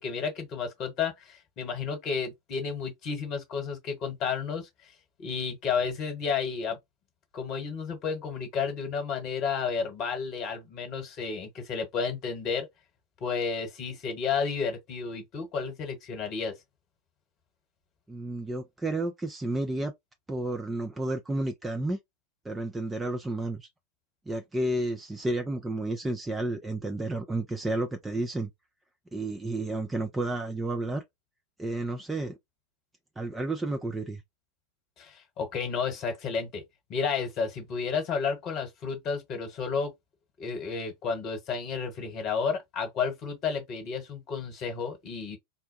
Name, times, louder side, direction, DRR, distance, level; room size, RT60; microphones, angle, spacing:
voice 1, 0.0-4.7 5.2-6.8 7.3-12.7 13.2-16.5 35.0-36.6 36.9-39.9 40.4-45.4, left 5 dB, 35° left, 1.3 m, -31 dB
voice 2, 18.1-19.9 20.3-22.0 22.4-23.7 24.3-28.5 29.1-31.0 31.6-32.3 33.2-34.2, right 2 dB, 10° right, 0.5 m, -31 dB
4.1 x 2.2 x 2.7 m
figure-of-eight pair, 90°, 0 cm